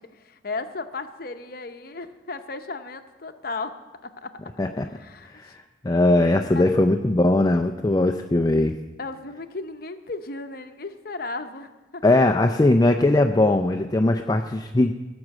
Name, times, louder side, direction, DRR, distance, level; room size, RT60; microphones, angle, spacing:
voice 1, 0.0-3.8 4.0-4.4 4.8-5.5 6.5-6.8 9.0-12.5, left 3 dB, 50° left, 8 dB, 0.8 m, -35 dB
voice 2, 5.3-8.7 12.0-14.9, left 2 dB, 20° left, 5 dB, 0.4 m, -20 dB
16.5 x 6.2 x 7.5 m, 1.2 s
head